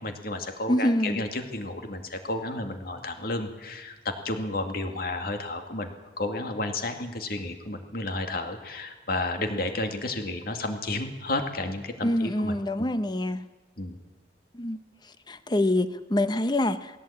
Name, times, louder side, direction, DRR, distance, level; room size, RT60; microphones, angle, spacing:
voice 1, 0.0-5.9 6.2-12.9 13.8-14.0, left 2 dB, 55° left, 6 dB, 2.3 m, -32 dB
voice 2, 0.7-1.2 12.0-13.5 14.5-14.8 15.3-17.0, left 1 dB, 25° left, 12 dB, 0.9 m, -25 dB
19.0 x 16.5 x 8.7 m, 1.2 s
head